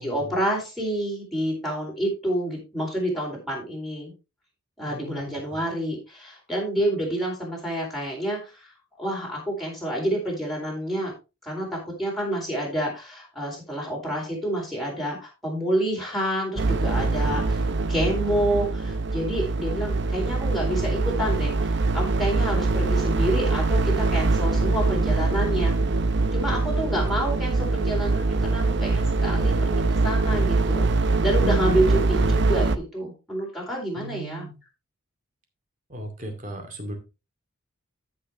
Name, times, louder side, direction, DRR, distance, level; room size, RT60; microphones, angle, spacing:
voice 1, 0.0-4.1 4.8-8.7 9.0-11.1 11.4-17.6 17.9-25.7 26.3-34.4, right 1 dB, ahead, -3 dB, 4.0 m, -28 dB
voice 2, 4.8-5.3 17.2-17.7 29.3-29.7 32.2-32.3 34.0-34.5 35.9-36.9, right 1 dB, 40° right, 4 dB, 2.2 m, -37 dB
sound 1, 16.6-32.8, right 3 dB, 55° right, 0.7 m, -23 dB
13.5 x 6.4 x 3.0 m, 0.28 s
head